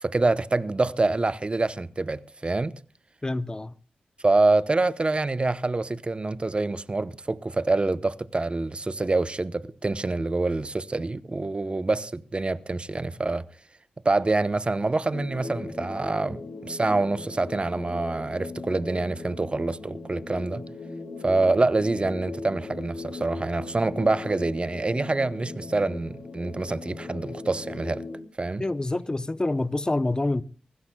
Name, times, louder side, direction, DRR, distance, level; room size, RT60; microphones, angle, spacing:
voice 1, 0.0-2.7 4.2-13.4 14.0-20.7 21.2-28.0 28.4-28.7, right 2 dB, 35° right, 0.8 m, -26 dB
voice 2, 3.2-3.7 28.6-30.4, left 2 dB, 25° left, 0.7 m, -27 dB
sound 1, 15.1-28.2, left 3 dB, 70° left, 2.8 m, -38 dB
25.0 x 16.5 x 2.3 m
supercardioid pair, 40°, 3 cm